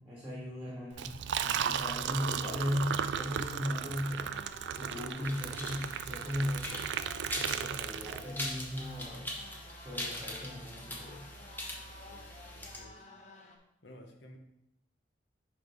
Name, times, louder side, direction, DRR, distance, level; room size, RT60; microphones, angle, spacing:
voice 1, 0.0-6.8 7.3-9.4 9.8-11.3, left 1 dB, 5° right, -7 dB, 1.7 m, -37 dB
Liquid, 0.9-8.6, right 8 dB, 75° right, 0.3 m, -35 dB
sound 1, 2.7-13.6, left 2 dB, 40° left, 0.8 m, -54 dB
sound 2, 5.2-12.8, left 1 dB, 10° left, 1.1 m, -42 dB
voice 2, 11.7-13.1 13.8-14.4, left 1 dB, 70° left, 3 dB, 1.0 m, -55 dB
10.5 x 3.5 x 3.5 m, 0.82 s
head